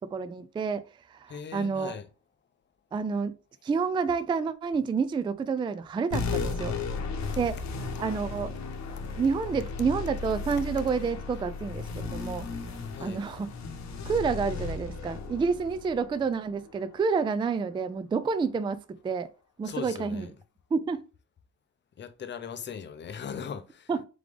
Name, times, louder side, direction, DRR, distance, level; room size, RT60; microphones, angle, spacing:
voice 1, 0.1-0.8 1.1-1.9 2.9-3.3 3.6-6.7 7.4-7.6 8.0-8.5 9.2-12.5 13.0-13.5 14.1-18.8 19.0-19.3 19.6-20.3 20.7-21.0 23.9-24.0, right 5 dB, 15° right, 0.3 m, -29 dB
voice 2, 1.3-2.1 12.9-13.2 19.6-20.3 22.0-23.9, left 7 dB, 35° left, 0.6 m, -39 dB
sound 1, 6.1-17.0, left 4 dB, 65° left, 0.9 m, -35 dB
3.6 x 3.4 x 3.4 m
cardioid pair, 90°, 30 cm